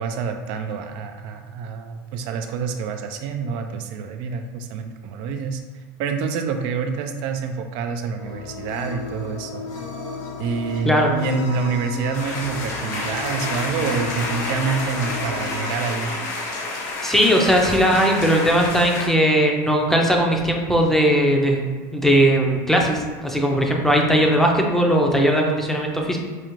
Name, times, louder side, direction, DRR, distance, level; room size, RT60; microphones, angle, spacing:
voice 1, 0.0-9.6 10.4-16.1, right 5 dB, 60° right, 6 dB, 0.4 m, -27 dB
sound 1, 8.2-16.2, left 3 dB, 40° left, 0.8 m, -34 dB
sound 2, 12.1-19.1, left 2 dB, 80° left, 1.1 m, -29 dB
voice 2, 17.0-21.6 21.9-26.2, equal, 5° left, 0 dB, 0.6 m, -18 dB
4.8 x 2.4 x 3.0 m, 1.5 s
supercardioid pair, 125°, 10 cm